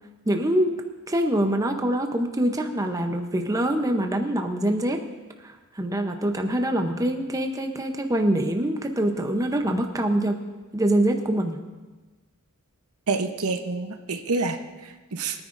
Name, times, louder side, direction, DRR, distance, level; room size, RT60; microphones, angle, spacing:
voice 1, 0.3-0.8 1.1-5.0 5.4-10.3 10.7-11.6, right 1 dB, 15° right, 4 dB, 0.7 m, -24 dB
voice 2, 13.1-15.4, right 3 dB, 85° right, 7 dB, 0.8 m, -28 dB
22.5 x 9.6 x 2.5 m, 1.2 s
head